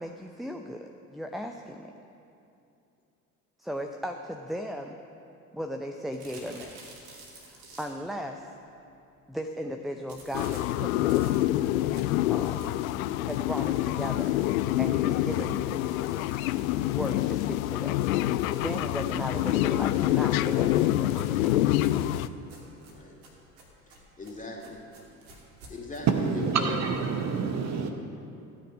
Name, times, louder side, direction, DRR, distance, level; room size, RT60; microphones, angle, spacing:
voice 1, 0.0-1.9 3.6-5.0 5.5-6.8 7.5-8.5 9.3-11.3 12.3-12.6 13.2-14.3 14.8-15.8 16.9-18.0 18.6-21.6, equal, ahead, 4 dB, 0.6 m, -36 dB
sound 1, 6.1-8.2 10.1-13.0 13.5-13.6 13.9-14.0 14.3-14.4 15.0-17.6 18.4-20.1 21.0-26.0, right 2 dB, 70° right, 2.6 m, -52 dB
sound 2, 10.3-22.3, left 14 dB, 65° left, 0.5 m, -26 dB
voice 2, 22.8-23.2 24.2-24.8 25.7-26.8, left 3 dB, 15° left, -2 dB, 2.6 m, -39 dB
voice 3, 26.1-27.9, right 5 dB, 35° right, 5 dB, 1.0 m, -27 dB
16.0 x 9.2 x 5.3 m, 2.7 s
figure-of-eight pair, 60°, 45 cm